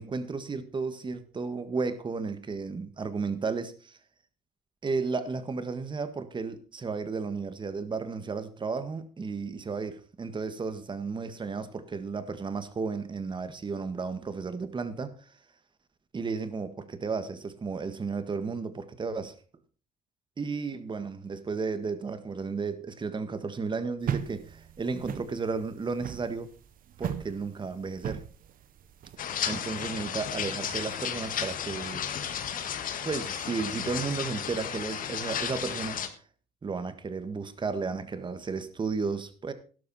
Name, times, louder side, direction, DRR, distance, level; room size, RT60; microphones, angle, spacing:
voice 1, 0.0-4.0 4.8-15.3 16.1-19.3 20.4-26.5 27.0-28.2 29.5-32.1 33.0-36.2 36.6-39.5, right 4 dB, 30° right, 1.7 m, -33 dB
sound 1, 24.0-29.2, right 9 dB, 55° right, 1.0 m, -36 dB
sound 2, 29.2-36.1, left 8 dB, 55° left, 1.8 m, -33 dB
12.0 x 12.0 x 4.3 m
cardioid pair, 110°, 17 cm